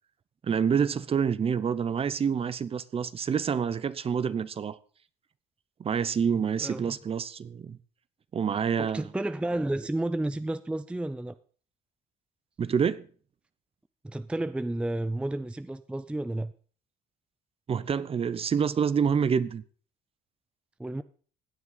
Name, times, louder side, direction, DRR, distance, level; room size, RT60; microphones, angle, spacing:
voice 1, 0.4-4.8 5.8-7.8 8.3-9.0 12.6-13.1 17.7-19.6, right 7 dB, 35° right, 0.8 m, -27 dB
voice 2, 6.3-7.0 8.8-11.4 14.0-16.5 20.8-21.0, right 1 dB, 5° right, 0.5 m, -31 dB
16.5 x 9.6 x 4.1 m
cardioid pair, 110°, 17 cm